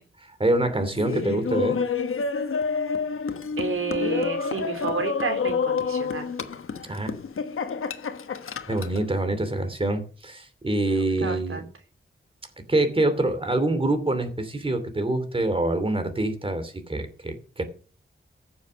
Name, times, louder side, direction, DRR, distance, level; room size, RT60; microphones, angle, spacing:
voice 1, 0.4-1.8 6.8-7.1 8.7-11.6 12.7-17.6, right 2 dB, 25° right, 8 dB, 2.7 m, -25 dB
Laughter, 1.0-9.1, left 5 dB, 80° left, 1.1 m, -28 dB
voice 2, 3.6-6.3 10.9-11.7, right 4 dB, 80° right, 5 dB, 3.0 m, -30 dB
15.0 x 7.2 x 6.7 m, 0.40 s
wide cardioid pair, 95°, 21 cm